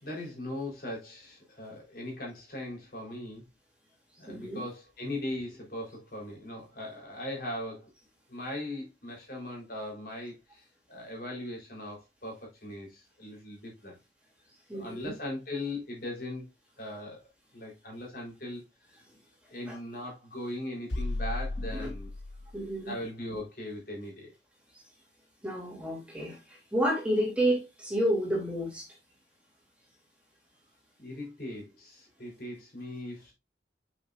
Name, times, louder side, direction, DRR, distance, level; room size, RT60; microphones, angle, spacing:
voice 1, 0.0-3.4 4.2-7.9 8.3-14.0 14.7-16.5 16.8-17.3 17.5-18.6 19.5-22.1 22.9-24.3 31.0-33.3, left 1 dB, 50° left, 4.0 m, -39 dB
voice 2, 4.3-4.6 14.7-15.1 19.7-19.8 21.7-21.9 22.5-22.9 25.4-26.4 26.7-28.9, right 1 dB, 5° right, 2.9 m, -30 dB
sound 1, 20.9-22.7, left 2 dB, 90° left, 1.1 m, -34 dB
8.4 x 6.2 x 2.5 m
head